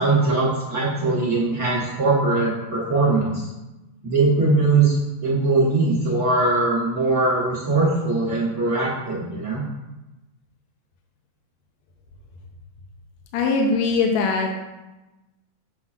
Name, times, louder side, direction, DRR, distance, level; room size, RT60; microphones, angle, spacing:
voice 1, 0.0-3.4 4.0-5.0 5.2-9.7, right 3 dB, 90° right, -8 dB, 0.8 m, -21 dB
voice 2, 13.3-14.5, left 4 dB, 80° left, 1 dB, 1.7 m, -21 dB
7.8 x 5.3 x 2.4 m, 1.0 s
omnidirectional pair, 3.6 m